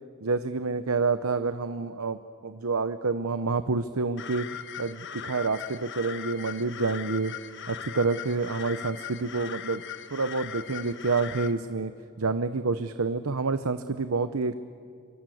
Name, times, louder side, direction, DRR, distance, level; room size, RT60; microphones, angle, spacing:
voice 1, 0.2-4.5 4.8-7.3 7.7-9.8 10.1-11.9 12.2-14.6, right 4 dB, 85° right, 11 dB, 0.9 m, -28 dB
sound 1, 4.2-11.5, left 8 dB, 60° left, 1.3 m, -39 dB
28.5 x 24.0 x 7.9 m, 2.2 s
head